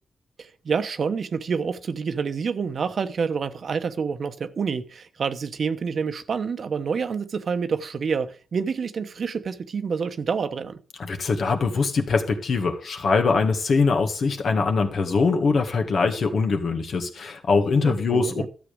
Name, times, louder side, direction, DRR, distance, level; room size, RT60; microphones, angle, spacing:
voice 1, 0.4-10.8 17.8-18.5, right 5 dB, 60° right, 1.0 m, -28 dB
voice 2, 11.0-18.4, left 4 dB, 70° left, 2.0 m, -22 dB
12.5 x 7.5 x 5.0 m
cardioid pair, 85°, 0 cm